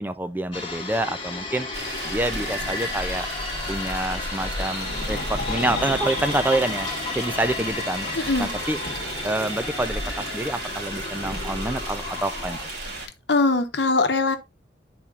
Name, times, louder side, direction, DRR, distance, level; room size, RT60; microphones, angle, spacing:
voice 1, 0.0-1.7 2.0-3.3 3.7-6.9 7.1-8.1 8.4-8.8 9.2-12.6, right 2 dB, 10° right, 0.4 m, -27 dB
sound 1, 0.5-12.7, left 3 dB, 30° left, 1.4 m, -34 dB
sound 2, 1.7-13.1, right 1 dB, 65° right, 2.2 m, -33 dB
sound 3, 4.8-11.9, left 4 dB, 50° left, 1.2 m, -37 dB
voice 2, 8.2-8.5 13.3-14.4, left 3 dB, 75° left, 0.9 m, -21 dB
10.5 x 4.3 x 2.4 m
head